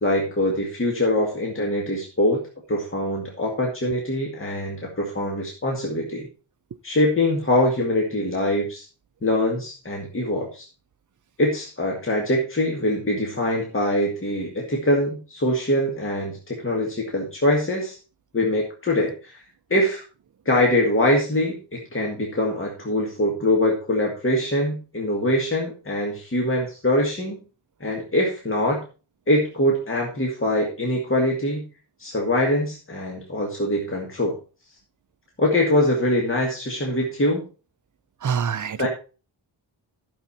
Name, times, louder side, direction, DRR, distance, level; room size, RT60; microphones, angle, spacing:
voice 1, 0.0-2.4 2.7-6.3 6.8-8.8 9.2-10.7 11.4-18.0 18.3-19.4 19.7-20.0 20.5-27.4 27.8-28.8 29.3-31.6 32.0-34.3 35.4-37.5 38.8-38.9, left 1 dB, 25° left, 2.0 m, -23 dB
voice 2, 38.2-38.9, right 7 dB, 40° right, 0.5 m, -25 dB
12.0 x 6.9 x 4.2 m
wide cardioid pair, 145°, 47 cm